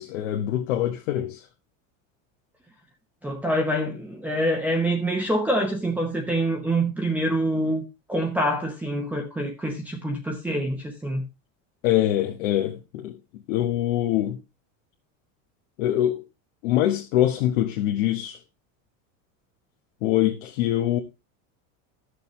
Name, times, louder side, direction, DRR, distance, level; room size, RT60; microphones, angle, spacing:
voice 1, 0.0-1.4 11.8-13.1 13.5-14.4 15.8-16.2 16.6-18.4 20.0-21.0, left 12 dB, 75° left, 1.3 m, -24 dB
voice 2, 3.2-7.8 8.1-11.2, right 1 dB, 5° right, 0.8 m, -26 dB
13.0 x 6.6 x 3.1 m
supercardioid pair, 175°, 38 cm